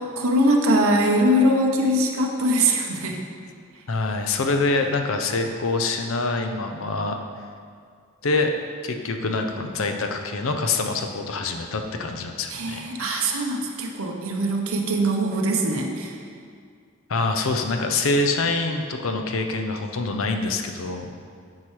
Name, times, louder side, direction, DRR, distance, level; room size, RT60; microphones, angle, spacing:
voice 1, 0.0-3.2 12.5-16.2, right 1 dB, 80° right, 1 dB, 0.7 m, -22 dB
voice 2, 3.9-7.2 8.2-8.5 8.8-13.4 17.1-21.1, left 3 dB, 75° left, 5 dB, 0.6 m, -25 dB
9.5 x 4.5 x 3.2 m, 2.2 s
head